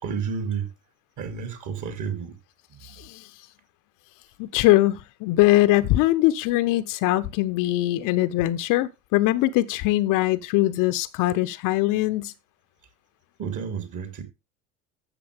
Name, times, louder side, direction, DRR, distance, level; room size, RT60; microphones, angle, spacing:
voice 1, 0.0-0.7 1.2-2.3 2.7-3.0 13.4-14.2, right 6 dB, 45° right, 3.0 m, -31 dB
voice 2, 2.8-3.3 4.4-12.3, left 17 dB, 50° left, 0.8 m, -22 dB
14.0 x 6.5 x 3.4 m
figure-of-eight pair, 70°, 42 cm